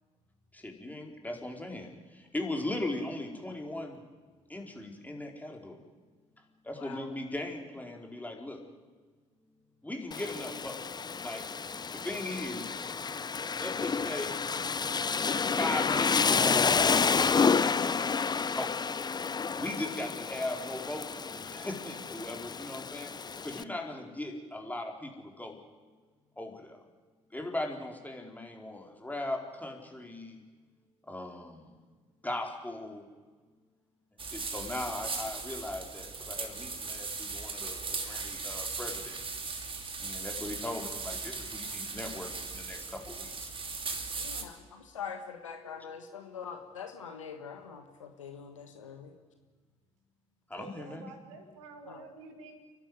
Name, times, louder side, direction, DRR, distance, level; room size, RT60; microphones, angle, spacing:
voice 1, 0.5-4.0 4.5-5.8 6.6-8.6 9.8-10.8 11.2-11.4 11.9-12.8 13.6-14.4 15.6-18.8 19.6-23.1 23.4-25.6 26.4-26.8 27.3-30.4 31.1-31.7 32.2-33.0 34.2-39.3 40.0-43.5 50.5-51.1, left 1 dB, 10° left, 2 dB, 4.6 m, -38 dB
voice 2, 6.7-7.1 19.6-19.7 23.7-23.9 44.2-49.1 51.9-52.0, left 6 dB, 85° left, 5 dB, 1.6 m, -44 dB
Rain, 10.1-23.6, left 5 dB, 25° left, 0.8 m, -30 dB
sound 1, 34.2-44.4, right 4 dB, 35° right, 3.0 m, -38 dB
voice 3, 50.5-52.6, right 4 dB, 75° right, 6 dB, 2.4 m, -49 dB
29.5 x 12.0 x 9.7 m, 1.4 s
figure-of-eight pair, 50°, 16 cm